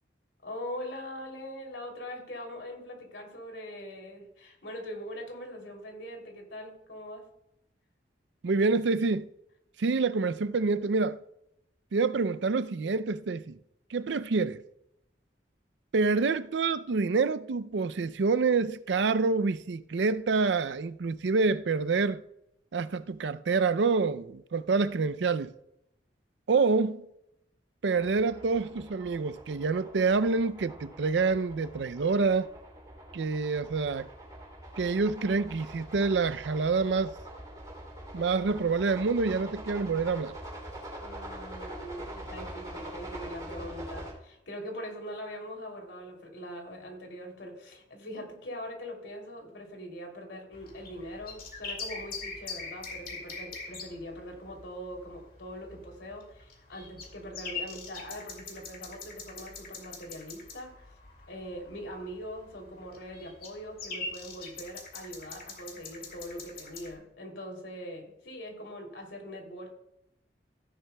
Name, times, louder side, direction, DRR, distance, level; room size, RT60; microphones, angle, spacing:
voice 1, 0.4-7.2 41.0-60.9 61.3-69.7, equal, 85° left, 3.0 m, -42 dB
voice 2, 8.4-9.3 9.8-11.2 11.9-13.6 13.9-14.6 15.9-22.2 22.7-25.5 26.5-27.1 27.8-32.5 33.1-34.1 34.8-37.2 38.1-40.3, right 4 dB, 80° right, 0.5 m, -27 dB
sound 1, 27.9-44.1, right 1 dB, 20° right, 2.8 m, -44 dB
sound 2, 50.5-66.9, left 4 dB, 55° left, 2.3 m, -43 dB
15.0 x 10.5 x 2.2 m
head